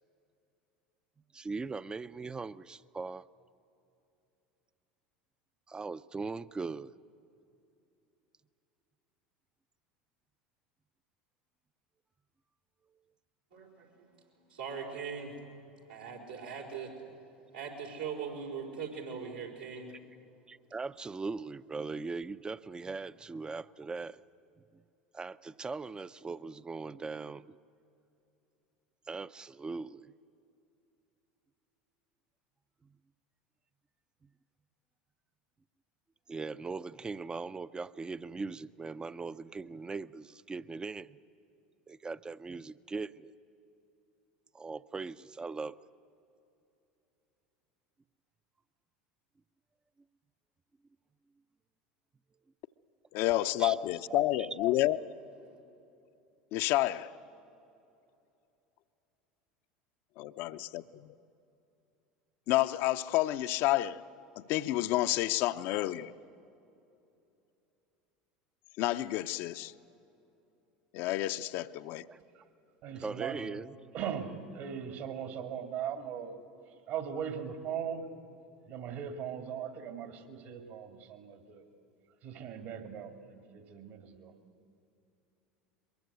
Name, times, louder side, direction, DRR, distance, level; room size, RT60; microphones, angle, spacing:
voice 1, 1.3-3.3 5.7-7.0 20.5-24.2 24.7-24.8 25.1-27.6 29.1-30.1 32.8-33.0 36.3-41.2 41.9-43.3 44.5-45.8 53.6-54.5 72.1-72.2 73.0-73.7, right 4 dB, 20° right, 0.6 m, -40 dB
voice 2, 13.5-14.1 14.5-15.3 15.9-16.9 17.5-19.9, right 6 dB, 85° right, 5.0 m, -40 dB
voice 3, 53.1-55.0 56.5-57.1 60.2-60.8 62.5-64.0 64.4-66.1 68.8-69.7 70.9-72.1, left 15 dB, 60° left, 0.7 m, -29 dB
voice 4, 72.8-73.6 73.9-76.4 76.7-78.1 78.7-81.6 82.2-84.3, right 8 dB, 60° right, 2.4 m, -39 dB
22.5 x 21.5 x 8.2 m
hypercardioid pair, 80°, 4 cm